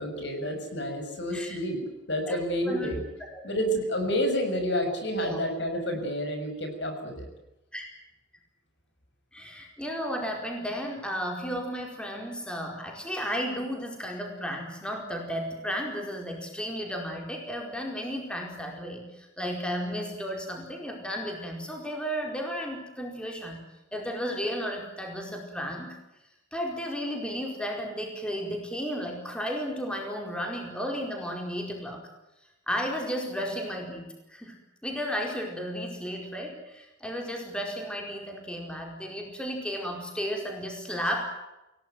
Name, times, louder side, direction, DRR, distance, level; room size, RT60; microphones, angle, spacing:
voice 1, 0.0-1.8 2.1-3.0 3.4-7.3, equal, 60° left, 6 dB, 6.5 m, -29 dB
voice 2, 3.2-3.6 5.2-5.4 7.7-7.9 9.3-23.6 23.9-26.0 26.5-32.0 32.7-41.2, equal, 5° left, 1 dB, 4.7 m, -33 dB
28.0 x 18.0 x 9.3 m, 0.95 s
head